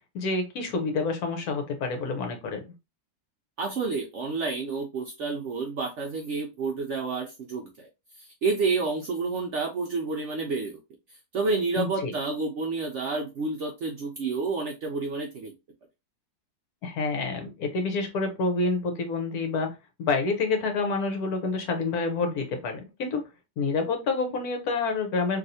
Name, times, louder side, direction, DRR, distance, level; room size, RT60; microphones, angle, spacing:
voice 1, 0.1-2.6 11.8-12.1 16.8-23.2 23.6-25.4, left 3 dB, 70° left, 5 dB, 1.3 m, -28 dB
voice 2, 3.6-7.9 8.2-10.8 11.1-15.5, right 4 dB, 70° right, 1 dB, 0.7 m, -29 dB
3.2 x 2.7 x 2.7 m, 0.25 s
omnidirectional pair, 1.7 m